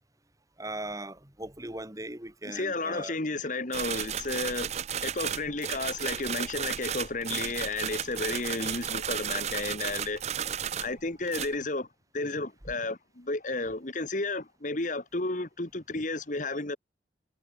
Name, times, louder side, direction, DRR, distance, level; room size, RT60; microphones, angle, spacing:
voice 1, 0.6-3.2, right 1 dB, 20° right, 2.2 m, -39 dB
voice 2, 2.5-4.7 5.0-10.3 10.8-11.9 12.1-16.8, left 2 dB, 45° left, 1.7 m, -32 dB
sound 1, 3.7-11.0 11.3-11.6, right 9 dB, 35° right, 0.5 m, -34 dB
head